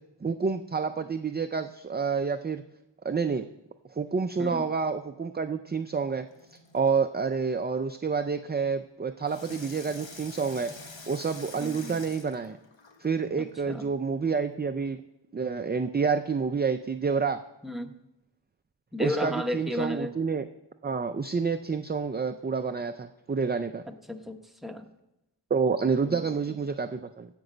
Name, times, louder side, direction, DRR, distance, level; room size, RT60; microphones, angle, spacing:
voice 1, 0.2-2.6 3.0-3.5 3.9-6.3 6.7-10.7 11.1-12.6 13.0-15.0 15.3-17.4 19.0-20.5 20.8-23.8 25.5-27.3, right 5 dB, 25° right, 9 dB, 0.4 m, -28 dB
Water tap faucet / Sink (filling or washing), 6.3-7.0 9.2-13.2 13.8-13.9, left 3 dB, 80° left, 1.3 m, -46 dB
voice 2, 11.6-12.0 13.4-13.9 17.6-17.9 18.9-20.1 23.9-24.9 26.1-26.2, left 1 dB, ahead, 4 dB, 0.9 m, -33 dB
16.0 x 5.4 x 5.1 m, 0.91 s
wide cardioid pair, 60°, 44 cm